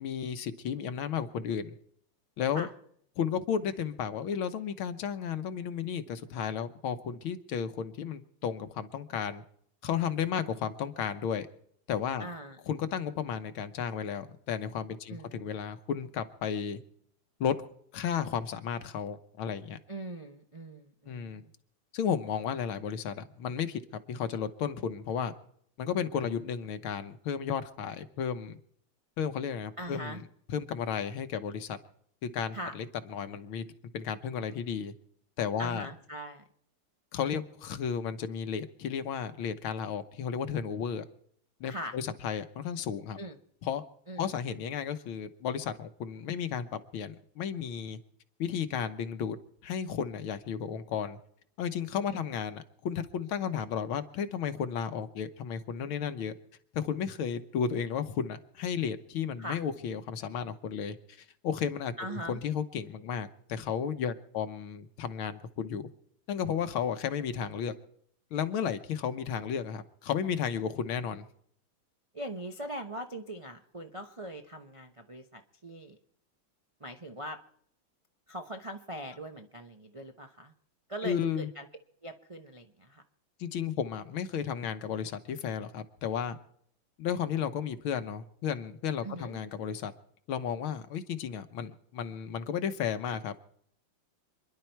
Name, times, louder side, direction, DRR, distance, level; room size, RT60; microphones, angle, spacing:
voice 1, 0.0-1.7 2.4-2.7 3.2-9.4 9.8-11.5 11.9-12.3 12.7-16.8 17.4-17.5 17.9-19.8 21.1-21.4 21.9-23.8 24.1-25.3 25.8-28.6 29.2-30.2 30.5-31.8 32.2-33.6 33.9-34.9 35.4-35.9 37.1-41.0 41.6-43.2 43.7-43.8 44.2-46.7 46.9-48.0 48.4-49.4 49.6-51.2 51.6-56.3 56.7-61.0 61.4-65.9 66.3-67.7 68.3-71.2 81.0-81.5 83.4-86.4 87.0-89.9 90.3-93.3, left 7 dB, 75° left, 11 dB, 1.8 m, -33 dB
voice 2, 12.2-12.6 15.1-15.5 19.9-21.5 29.8-30.2 32.5-32.8 35.6-36.4 41.7-42.0 43.2-43.4 44.1-44.3 52.1-52.3 59.4-59.6 62.0-62.4 72.1-76.0 76.8-77.4 78.3-80.5 80.9-81.7 82.0-83.0 89.0-89.4, right 1 dB, 40° right, 4 dB, 0.4 m, -41 dB
27.5 x 11.0 x 4.5 m, 0.68 s
omnidirectional pair, 2.3 m